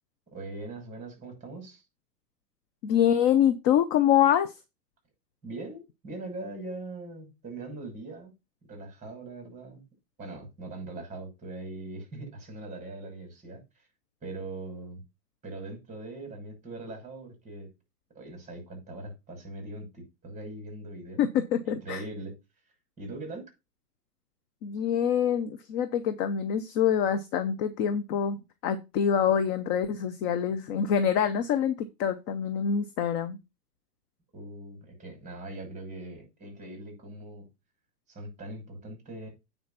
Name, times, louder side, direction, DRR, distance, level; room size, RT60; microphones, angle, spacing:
voice 1, 0.3-1.8 5.4-8.3 8.7-9.8 10.2-13.6 14.2-15.0 15.4-17.7 18.1-21.2 21.6-22.4 23.0-23.5 34.3-37.5 38.1-39.3, right 2 dB, 15° right, 6.3 m, -41 dB
voice 2, 2.8-4.5 21.2-22.0 24.6-28.4 28.6-33.4, left 8 dB, 20° left, 0.5 m, -25 dB
9.4 x 4.4 x 5.8 m
hypercardioid pair, 120°, 49 cm